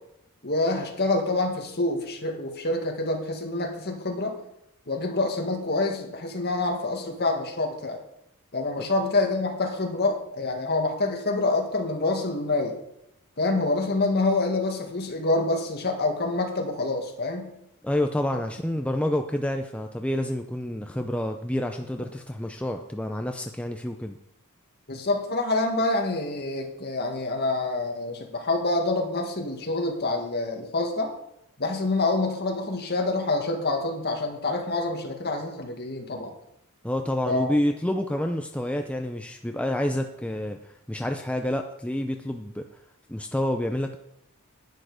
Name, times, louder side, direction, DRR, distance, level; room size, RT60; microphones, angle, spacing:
voice 1, 0.4-4.3 4.9-8.0 8.5-12.8 13.4-17.5 24.9-31.1 31.6-36.3 37.3-37.5, left 2 dB, 45° left, 2 dB, 2.0 m, -26 dB
voice 2, 17.8-24.2 36.8-42.6 43.1-44.0, left 1 dB, 5° left, 5 dB, 0.5 m, -28 dB
10.5 x 10.0 x 5.0 m, 0.80 s
head